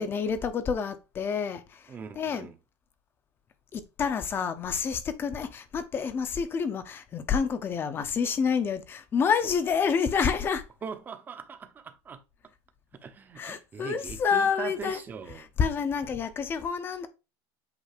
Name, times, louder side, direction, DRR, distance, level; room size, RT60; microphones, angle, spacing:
voice 1, 0.0-1.8 2.2-2.5 3.7-10.6 13.4-15.0 15.6-17.1, left 6 dB, 25° left, 0.8 m, -28 dB
voice 2, 1.9-2.5 10.8-12.2 13.0-15.5, right 6 dB, 20° right, 0.9 m, -40 dB
8.2 x 2.8 x 5.0 m
cardioid pair, 155°, 9 cm